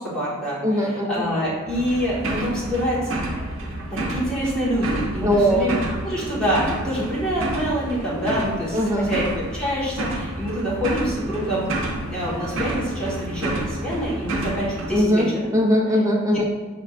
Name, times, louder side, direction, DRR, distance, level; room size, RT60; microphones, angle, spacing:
voice 1, 0.0-3.1 3.9-11.7 12.1-15.3, equal, 5° left, -9 dB, 1.3 m, -26 dB
voice 2, 0.6-1.2 5.2-5.7 8.7-9.1 14.9-16.5, equal, 15° right, 0 dB, 0.4 m, -20 dB
sound 1, 1.7-15.0, right 1 dB, 65° right, 0.6 m, -30 dB
5.6 x 3.5 x 2.4 m, 1.3 s
head